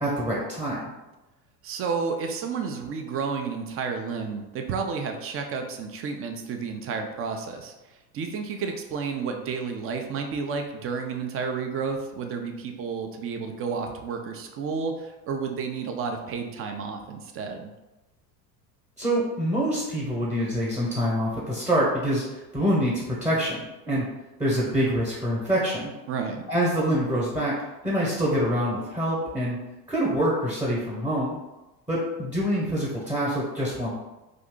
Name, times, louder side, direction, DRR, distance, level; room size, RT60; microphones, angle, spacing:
voice 1, 0.0-0.9 19.0-23.6 23.9-24.1 24.4-25.9 26.5-27.5 27.8-29.6 29.9-31.4 31.9-33.9, equal, 10° right, -5 dB, 0.9 m, -25 dB
voice 2, 1.6-7.7 8.1-17.7 26.1-26.4, right 5 dB, 30° right, 4 dB, 0.4 m, -31 dB
2.7 x 2.5 x 3.6 m, 1.0 s
hypercardioid pair, 90°, 49 cm